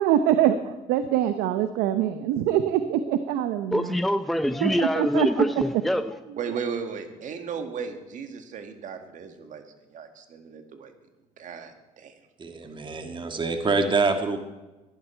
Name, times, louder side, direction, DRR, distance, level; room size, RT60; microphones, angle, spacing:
voice 1, 0.0-3.9 4.6-5.4, right 10 dB, 80° right, 10 dB, 0.7 m, -24 dB
voice 2, 3.7-6.1, equal, ahead, 9 dB, 0.6 m, -24 dB
voice 3, 6.4-9.6 9.9-10.9 11.4-12.2, right 6 dB, 60° right, 7 dB, 1.9 m, -35 dB
voice 4, 12.4-14.4, right 3 dB, 35° right, 6 dB, 1.7 m, -25 dB
15.5 x 11.0 x 4.4 m, 1.1 s
supercardioid pair, 70°, 15 cm